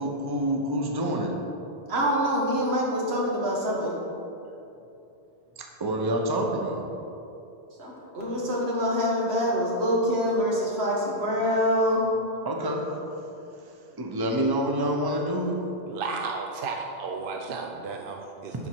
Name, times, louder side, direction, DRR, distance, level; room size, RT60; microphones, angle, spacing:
voice 1, 0.0-1.3 5.6-6.9 12.4-12.9 13.6-13.7 14.0-15.6, right 1 dB, 25° right, 1 dB, 0.7 m, -27 dB
voice 2, 1.9-3.9 7.8-12.0, equal, 90° right, -4 dB, 1.8 m, -25 dB
voice 3, 15.9-18.5, right 4 dB, 65° right, 3 dB, 0.7 m, -33 dB
11.0 x 4.3 x 4.5 m, 2.8 s
omnidirectional pair, 1.0 m